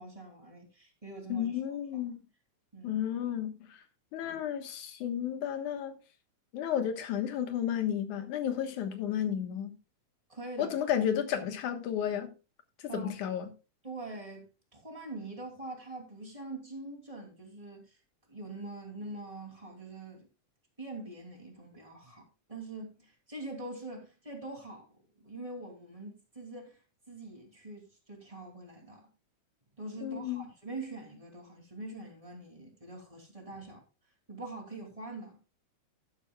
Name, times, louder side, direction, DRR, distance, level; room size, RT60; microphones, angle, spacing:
voice 1, 0.0-1.5 2.7-3.0 10.3-10.7 12.9-13.1 13.8-18.0 18.3-20.3 20.8-26.8 27.1-29.1 29.8-33.8 34.3-35.4, right 2 dB, 10° right, 2.6 m, -44 dB
voice 2, 1.3-2.2 2.8-3.8 4.1-5.9 6.5-9.8 10.6-12.3 12.8-13.5 30.0-30.4, left 9 dB, 85° left, 2.8 m, -32 dB
12.0 x 11.5 x 2.3 m
omnidirectional pair, 3.4 m